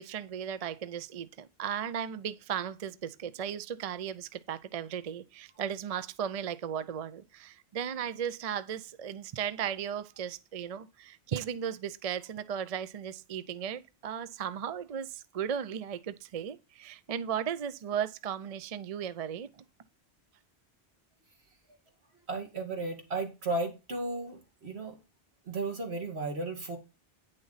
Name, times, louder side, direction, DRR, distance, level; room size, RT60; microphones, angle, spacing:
voice 1, 0.0-19.5, right 8 dB, 45° right, 0.5 m, -36 dB
voice 2, 22.3-24.9 25.5-26.8, right 2 dB, 80° right, 2.5 m, -34 dB
9.5 x 6.5 x 4.0 m
omnidirectional pair, 1.1 m